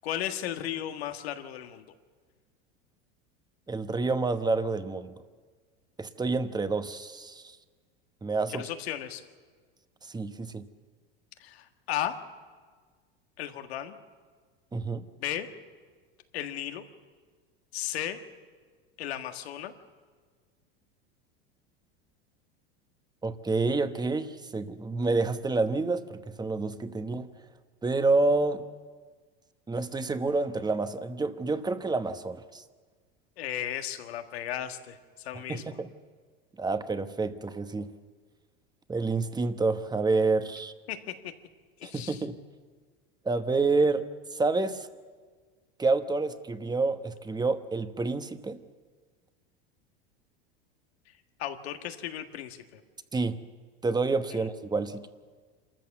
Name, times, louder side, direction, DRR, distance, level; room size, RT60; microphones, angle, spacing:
voice 1, 0.0-1.8 8.5-9.2 11.4-12.2 13.4-13.9 15.2-15.5 16.3-16.8 17.7-18.2 19.0-19.7 33.4-35.6 40.9-41.3 41.8-42.2 51.4-52.8, left 11 dB, 80° left, 7 dB, 1.7 m, -35 dB
voice 2, 3.7-5.1 6.0-7.6 8.2-8.7 10.1-10.7 14.7-15.0 23.2-27.3 27.8-28.6 29.7-32.6 35.5-35.9 36.6-37.9 38.9-40.7 41.8-42.4 43.2-44.9 45.8-48.6 53.1-53.4 53.8-55.1, right 3 dB, 15° right, 10 dB, 1.1 m, -28 dB
27.0 x 14.0 x 7.2 m, 1.5 s
hypercardioid pair, 100°, 31 cm